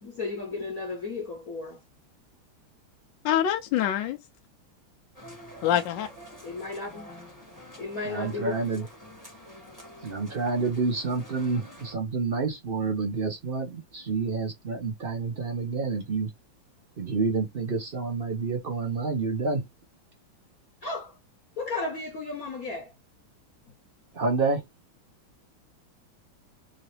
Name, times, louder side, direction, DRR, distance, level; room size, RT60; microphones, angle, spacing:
voice 1, 0.0-1.8 6.4-7.1 7.8-8.9 20.8-21.2 21.6-22.9, left 3 dB, 55° left, 1.1 m, -34 dB
voice 2, 3.2-4.2 5.6-6.1, left 10 dB, 75° left, 1.2 m, -25 dB
sound 1, 5.1-11.9, equal, 10° right, 1.3 m, -48 dB
voice 3, 8.0-8.8 10.0-16.3 17.0-19.7 24.1-24.6, right 4 dB, 55° right, 0.6 m, -28 dB
3.9 x 2.8 x 3.2 m
omnidirectional pair, 2.3 m